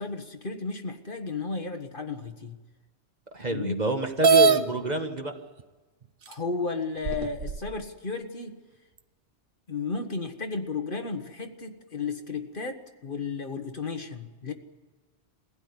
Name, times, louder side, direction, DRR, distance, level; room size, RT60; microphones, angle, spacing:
voice 1, 0.0-2.6 3.5-3.8 6.3-8.6 9.7-14.5, left 4 dB, 50° left, 5 dB, 1.6 m, -33 dB
voice 2, 3.3-5.3, right 2 dB, 40° right, 5 dB, 1.6 m, -28 dB
sound 1, 4.2-4.6 5.6-5.7 6.3-6.4 7.0-7.7, right 4 dB, 55° right, 1.0 m, -20 dB
23.0 x 16.0 x 9.7 m, 1.3 s
omnidirectional pair, 1.2 m